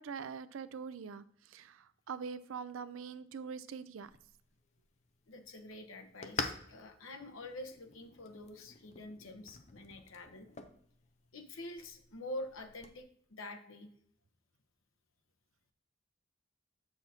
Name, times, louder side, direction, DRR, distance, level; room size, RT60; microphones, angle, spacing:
voice 1, 0.0-4.1, right 6 dB, 80° right, 15 dB, 0.4 m, -44 dB
sound 1, 4.0-13.0, left 4 dB, 35° left, 0.6 m, -47 dB
voice 2, 5.3-10.5 11.3-13.9, left 1 dB, 90° left, 5 dB, 0.9 m, -46 dB
7.4 x 6.3 x 2.8 m, 0.67 s
head